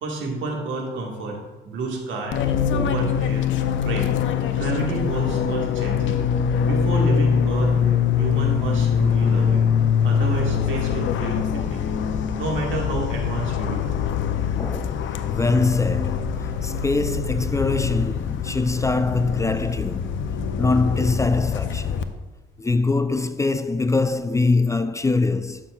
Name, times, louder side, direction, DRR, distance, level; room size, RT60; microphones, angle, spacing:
voice 1, 0.0-2.4 2.7-3.5 3.8-4.2 4.5-6.2 6.7-7.7 8.2-9.6 10.0-11.8 12.4-14.0, right 2 dB, 75° right, 1.8 m, -29 dB
Fixed-wing aircraft airplane, 2.3-22.0, left 7 dB, 75° left, 0.6 m, -23 dB
voice 2, 14.6-16.3 16.6-20.2 20.6-22.0 22.6-25.6, left 3 dB, 15° left, 0.3 m, -23 dB
11.5 x 5.8 x 2.4 m
cardioid pair, 90°, 20 cm